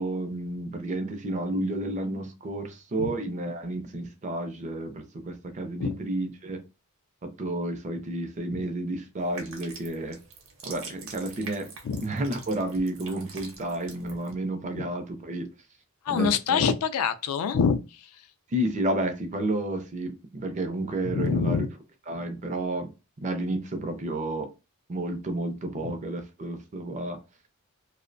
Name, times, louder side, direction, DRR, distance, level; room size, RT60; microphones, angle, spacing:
voice 1, 0.0-6.6 7.2-10.2 10.6-11.7 12.0-15.5 16.1-16.6 18.5-21.7 22.1-22.9 23.2-24.5 24.9-27.2, right 1 dB, 30° right, 0.4 m, -31 dB
sound 1, 9.2-14.3, right 4 dB, 60° right, 0.7 m, -45 dB
voice 2, 16.0-18.1 21.1-21.7 25.8-25.9, left 6 dB, 75° left, 0.3 m, -26 dB
2.6 x 2.0 x 2.5 m
head